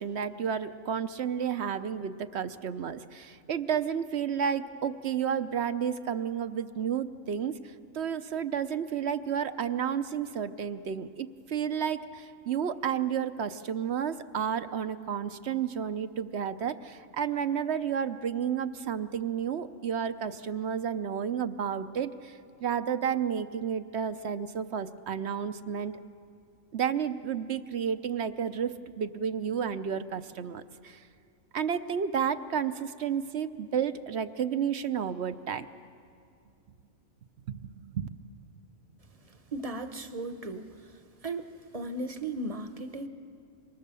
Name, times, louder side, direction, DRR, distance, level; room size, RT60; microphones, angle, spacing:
voice 1, 0.0-26.0 26.7-31.0 31.5-35.7 37.5-38.1, right 8 dB, 60° right, 11 dB, 1.0 m, -31 dB
voice 2, 39.3-40.7 41.2-41.5 41.7-43.1, right 2 dB, 30° right, 9 dB, 1.0 m, -36 dB
26.5 x 24.0 x 6.9 m, 2.5 s
omnidirectional pair, 1.3 m